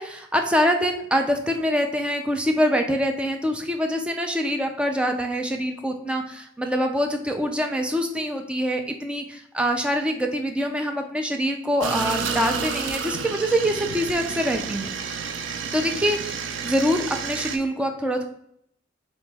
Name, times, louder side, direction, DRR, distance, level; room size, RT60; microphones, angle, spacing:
voice 1, 0.0-14.9 15.7-18.2, equal, 5° right, 3 dB, 0.4 m, -25 dB
sound 1, 11.8-17.6, right 6 dB, 85° right, 0.4 m, -30 dB
4.0 x 3.0 x 3.4 m, 0.70 s
head